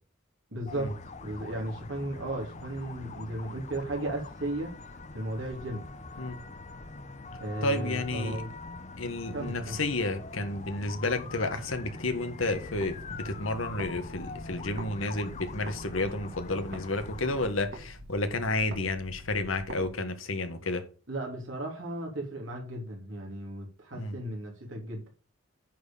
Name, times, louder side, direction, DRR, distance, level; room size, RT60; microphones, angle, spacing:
voice 1, 0.5-0.9 1.2-4.7 5.1-5.8 7.4-8.5 9.3-9.8 21.1-25.1, right 1 dB, 70° right, 3.1 m, -35 dB
sound 1, 0.7-17.5, left 3 dB, 35° left, 0.7 m, -43 dB
voice 2, 7.6-8.4 9.0-20.9 23.9-24.2, left 2 dB, 85° left, 1.6 m, -31 dB
sound 2, 12.5-14.9 15.2-19.9, right 1 dB, 55° right, 1.7 m, -46 dB
9.2 x 4.5 x 7.1 m
head